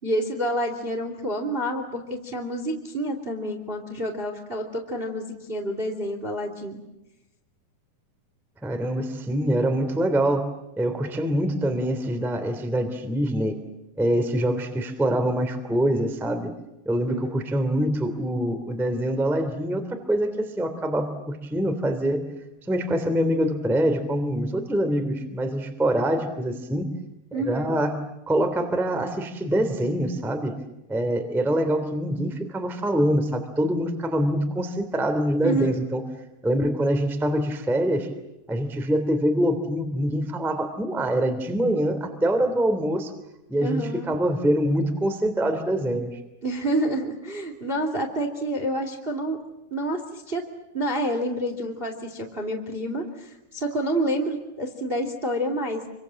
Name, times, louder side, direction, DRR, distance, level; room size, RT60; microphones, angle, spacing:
voice 1, 0.0-6.8 17.1-17.4 27.3-27.7 35.4-35.8 43.6-44.2 46.4-49.4 49.7-50.5 50.7-55.9, right 1 dB, 15° right, 5 dB, 2.2 m, -28 dB
voice 2, 8.6-10.5 10.8-13.6 14.0-16.5 16.8-19.8 20.1-22.2 22.7-26.8 27.3-28.0 28.3-30.5 30.9-36.0 36.4-38.1 38.5-43.1 43.5-46.2, right 1 dB, ahead, 7 dB, 2.0 m, -24 dB
29.0 x 24.5 x 7.7 m, 0.93 s
omnidirectional pair, 4.9 m